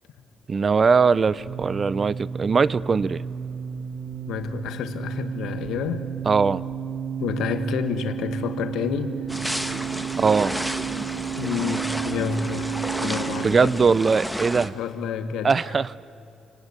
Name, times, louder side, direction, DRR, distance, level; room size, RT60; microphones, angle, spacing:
voice 1, 0.5-3.2 6.3-6.6 10.2-10.6 13.4-14.7 15.4-16.0, right 5 dB, 40° right, 20 dB, 0.5 m, -20 dB
sound 1, 1.2-13.5, right 8 dB, 65° right, 1.3 m, -32 dB
voice 2, 4.3-6.0 7.2-9.1 11.4-12.7 13.0-13.7 14.7-15.8, left 7 dB, 85° left, 9 dB, 1.5 m, -29 dB
sound 2, 9.3-14.7, equal, ahead, 1.3 m, -31 dB
28.5 x 18.5 x 9.7 m, 2.5 s
cardioid pair, 90°, 0 cm